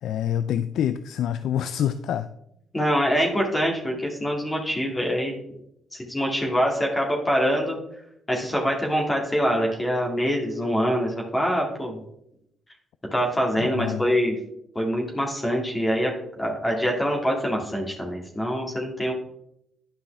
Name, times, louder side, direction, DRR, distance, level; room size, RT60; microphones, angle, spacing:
voice 1, 0.0-2.3 13.6-14.0, left 10 dB, 75° left, 12 dB, 0.3 m, -26 dB
voice 2, 2.7-5.3 5.9-7.8 8.3-12.0 13.1-14.4 14.8-19.1, equal, 20° left, 0 dB, 2.1 m, -24 dB
10.0 x 5.4 x 3.3 m, 0.78 s
supercardioid pair, 60°, 0 cm